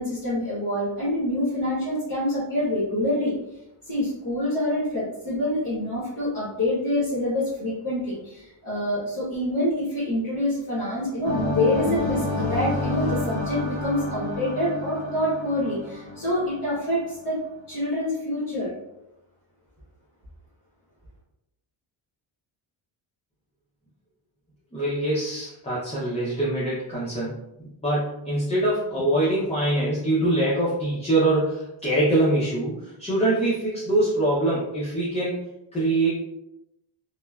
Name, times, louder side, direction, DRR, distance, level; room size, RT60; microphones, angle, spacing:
voice 1, 0.0-3.3 3.8-17.4 17.7-18.7, left 1 dB, 40° left, -9 dB, 1.0 m, -26 dB
sound 1, 11.2-17.2, left 2 dB, 10° right, 0.9 m, -29 dB
voice 2, 24.7-27.3 27.6-35.4 35.7-36.1, right 1 dB, 15° left, -7 dB, 0.5 m, -24 dB
3.0 x 2.1 x 2.2 m, 0.88 s
cardioid pair, 125°, 50 cm